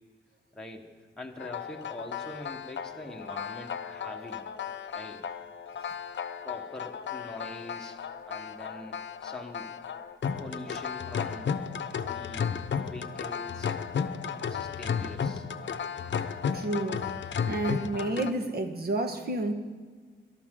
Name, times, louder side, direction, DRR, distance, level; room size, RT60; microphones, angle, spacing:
voice 1, 0.5-4.4 4.9-5.3 6.4-8.0 8.2-9.7 10.4-11.5 12.0-12.5 12.8-13.8 14.3-15.8, left 2 dB, 5° left, 1.4 m, -44 dB
sound 1, 1.4-18.3, left 7 dB, 65° left, 0.8 m, -34 dB
voice 2, 16.5-17.2 17.5-19.5, right 2 dB, 50° right, 1.4 m, -30 dB
18.5 x 12.5 x 3.8 m
cardioid pair, 90°, 20 cm